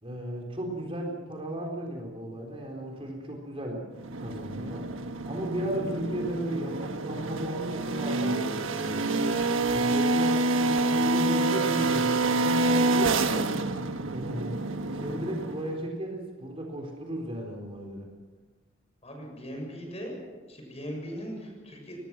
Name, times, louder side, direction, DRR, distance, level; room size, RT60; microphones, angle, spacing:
voice 1, 0.0-3.8 4.2-4.9 5.2-9.1 9.7-13.5 14.1-18.1, right 1 dB, 30° right, 1 dB, 4.1 m, -35 dB
sound 1, 4.0-15.8, right 2 dB, 90° right, 1.4 m, -27 dB
voice 2, 19.0-20.2 20.5-22.0, equal, 30° left, 2 dB, 7.0 m, -39 dB
24.5 x 19.5 x 6.1 m, 1.3 s
head